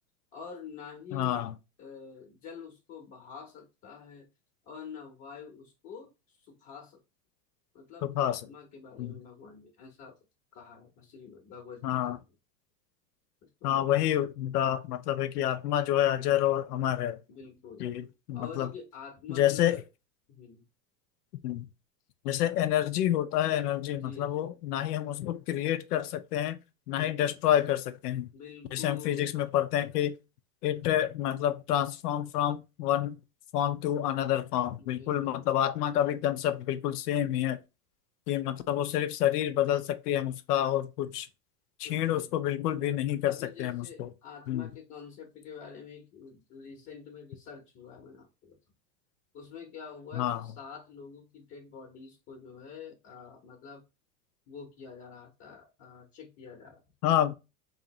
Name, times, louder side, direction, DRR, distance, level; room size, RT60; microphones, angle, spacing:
voice 1, 0.3-1.5 1.8-4.3 4.6-7.0 7.7-10.1 10.5-12.3 13.4-13.9 17.3-17.9 18.3-19.8 20.3-20.6 24.0-24.6 26.9-27.4 28.3-29.3 34.8-35.5 41.8-42.3 43.3-48.6 49.3-53.8 54.5-56.8, left 6 dB, 35° left, 1.0 m, -47 dB
voice 2, 1.1-1.5 8.0-8.4 9.0-9.1 11.8-12.2 13.6-17.2 17.8-18.7 19.3-19.8 21.4-21.7 22.2-26.6 26.9-28.3 28.7-30.2 30.6-33.2 33.5-37.6 38.3-41.3 41.8-44.1 44.5-44.7 50.1-50.5 57.0-57.3, left 11 dB, 85° left, 0.8 m, -28 dB
3.8 x 3.2 x 2.9 m
supercardioid pair, 120°, 45 cm